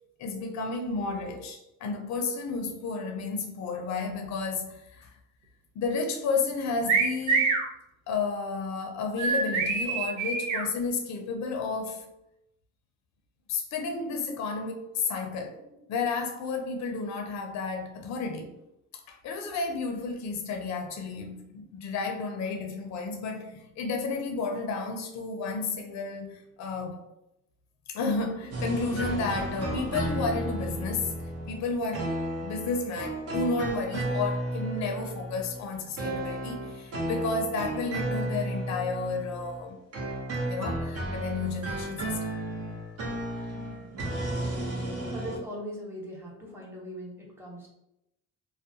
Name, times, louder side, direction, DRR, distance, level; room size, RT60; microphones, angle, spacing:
voice 1, 0.2-5.1 5.8-7.5 8.1-12.1 13.5-18.5 19.1-27.0 27.9-31.1 31.5-32.2 32.4-39.8 40.4-42.3, left 4 dB, 65° left, 0.5 m, -32 dB
sound 1, 6.9-7.7 9.2-10.6, right 4 dB, 90° right, 0.6 m, -25 dB
sound 2, 28.5-39.7 39.9-45.4, right 1 dB, 50° right, 0.8 m, -33 dB
voice 2, 43.5-44.1 45.0-47.7, equal, 10° right, 0.9 m, -41 dB
2.3 x 2.1 x 2.7 m
cardioid pair, 90°, 30 cm